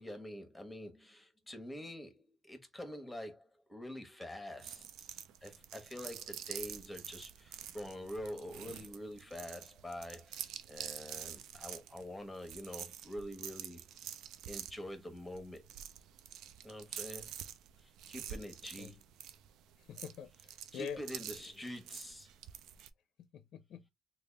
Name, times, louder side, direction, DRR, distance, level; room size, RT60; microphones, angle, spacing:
voice 1, 0.0-13.9 14.5-15.7 16.6-17.3 17.8-19.0 20.7-22.3, left 1 dB, 10° left, 1.2 m, -46 dB
sound 1, 4.6-22.9, right 10 dB, 90° right, 0.4 m, -47 dB
voice 2, 19.9-21.0 23.3-23.9, left 7 dB, 75° left, 0.5 m, -45 dB
3.3 x 2.4 x 3.4 m
cardioid pair, 90°, 0 cm